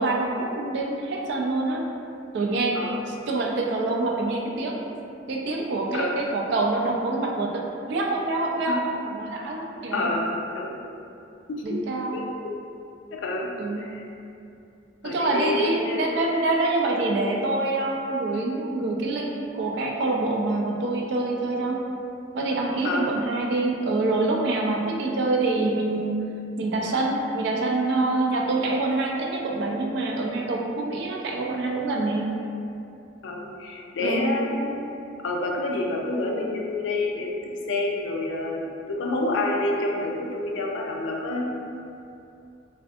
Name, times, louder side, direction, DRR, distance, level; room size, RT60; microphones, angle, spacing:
voice 1, 0.0-1.9 2.3-4.8 5.3-10.1 11.6-12.2 13.6-13.9 15.0-21.8 22.3-26.2 26.6-32.3 34.0-34.3, right 2 dB, 65° right, 0 dB, 0.3 m, -26 dB
voice 2, 9.9-10.8 11.5-11.9 12.1-12.5 13.1-13.5 13.8-14.0 15.0-16.1 22.8-23.1 33.2-34.9 35.2-41.5, left 2 dB, 75° left, -1 dB, 0.4 m, -28 dB
2.5 x 2.4 x 2.4 m, 2.6 s
head